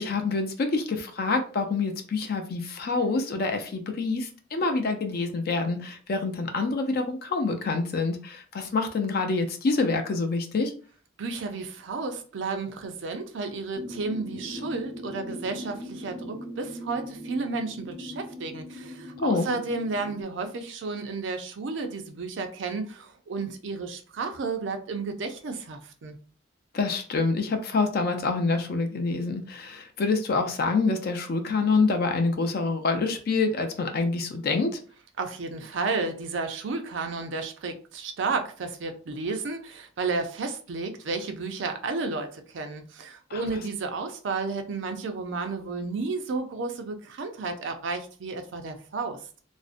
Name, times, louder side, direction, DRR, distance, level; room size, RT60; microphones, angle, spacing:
voice 1, 0.0-10.7 19.2-19.5 26.7-34.7 43.3-43.4, left 3 dB, 55° left, 6 dB, 0.4 m, -26 dB
voice 2, 11.2-26.2 35.2-49.2, right 3 dB, 70° right, 6 dB, 0.4 m, -32 dB
sound 1, 13.7-20.2, equal, 5° right, 0.5 m, -40 dB
2.5 x 2.0 x 2.4 m, 0.40 s
head